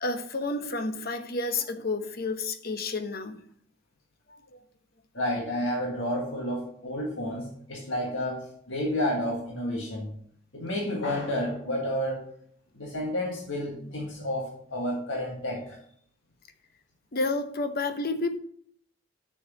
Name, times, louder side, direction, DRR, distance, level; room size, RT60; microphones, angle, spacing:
voice 1, 0.0-3.4 4.3-4.6 13.8-13.9 17.1-18.4, left 3 dB, 50° left, 9 dB, 0.9 m, -30 dB
voice 2, 5.1-10.1 10.5-12.3 12.7-15.8, left 1 dB, 75° left, -1 dB, 1.6 m, -30 dB
6.8 x 6.3 x 6.1 m, 0.63 s
head